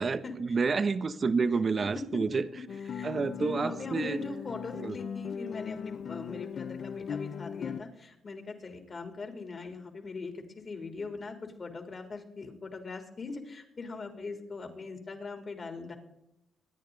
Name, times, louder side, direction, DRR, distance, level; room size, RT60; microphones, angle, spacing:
voice 1, 0.0-2.4 3.0-4.2 4.8-5.0, right 4 dB, 45° right, 12 dB, 1.1 m, -29 dB
Guitar, 2.7-7.8, left 7 dB, 60° left, 0.7 m, -38 dB
voice 2, 3.4-15.9, left 3 dB, 45° left, 5 dB, 3.8 m, -41 dB
25.5 x 10.0 x 4.1 m, 0.85 s
supercardioid pair, 60°, 0 cm